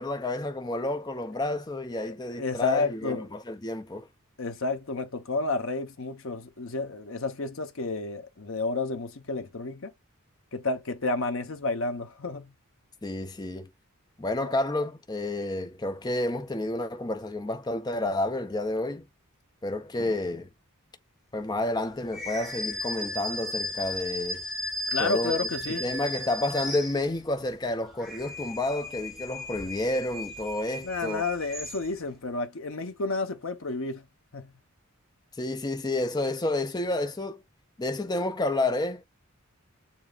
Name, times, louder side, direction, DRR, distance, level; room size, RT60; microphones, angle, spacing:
voice 1, 0.0-4.1 13.0-13.7 14.2-19.1 19.6-20.5 21.3-24.4 25.0-25.4 25.7-31.2 35.3-37.4 37.8-39.0, left 2 dB, 20° left, 0.5 m, -30 dB
voice 2, 2.0-3.3 4.4-9.9 10.5-12.5 14.4-14.6 24.9-26.0 30.8-34.1 34.3-34.5, left 3 dB, 65° left, 0.8 m, -31 dB
sound 1, 22.1-27.4 27.8-32.1, left 1 dB, ahead, 1.3 m, -35 dB
7.1 x 2.8 x 2.4 m
head